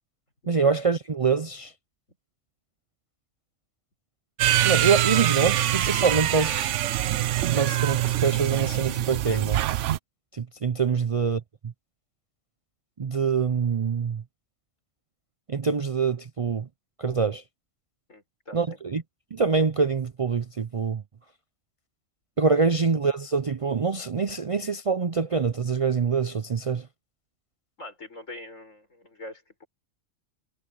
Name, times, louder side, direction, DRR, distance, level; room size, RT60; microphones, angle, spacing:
voice 1, 0.5-1.7 4.6-6.7 7.5-9.6 10.3-11.7 13.0-14.2 15.5-16.7 17.0-17.4 18.5-19.0 19.3-21.0 22.4-26.9, right 5 dB, 45° right, 0.4 m, -25 dB
sound 1, 4.4-10.0, right 13 dB, 75° right, 0.9 m, -24 dB
voice 2, 18.1-18.6 27.8-29.7, left 2 dB, 85° left, 7.3 m, -43 dB
omnidirectional pair, 1.3 m